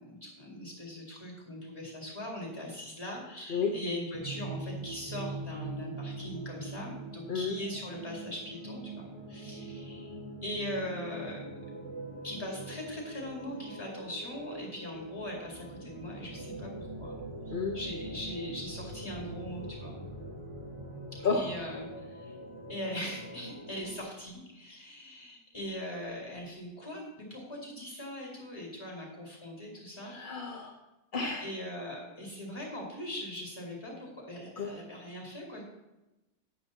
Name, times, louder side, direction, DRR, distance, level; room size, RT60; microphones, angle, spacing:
voice 1, 0.0-10.2 10.4-11.5 12.2-17.1 17.4-20.0 21.3-22.4 22.7-30.1 31.4-35.6, left 1 dB, 15° left, -2 dB, 4.5 m, -40 dB
sound 1, 4.1-24.0, right 2 dB, 20° right, 1.6 m, -43 dB
voice 2, 30.0-30.7 31.1-31.5 34.6-34.7, left 5 dB, 40° left, 0 dB, 0.9 m, -31 dB
14.0 x 11.0 x 2.9 m, 0.98 s
omnidirectional pair, 1.7 m